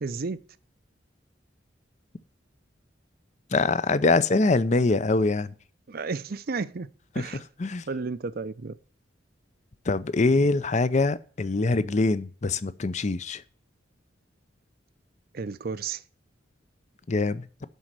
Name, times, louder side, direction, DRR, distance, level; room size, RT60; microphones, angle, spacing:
voice 1, 0.0-0.4 5.9-6.9 7.2-7.4 7.9-8.8 15.3-16.0, right 4 dB, 55° right, 0.5 m, -32 dB
voice 2, 3.5-5.5 7.6-7.8 9.9-13.4 17.1-17.4, left 3 dB, 40° left, 0.6 m, -23 dB
11.0 x 4.2 x 7.6 m
head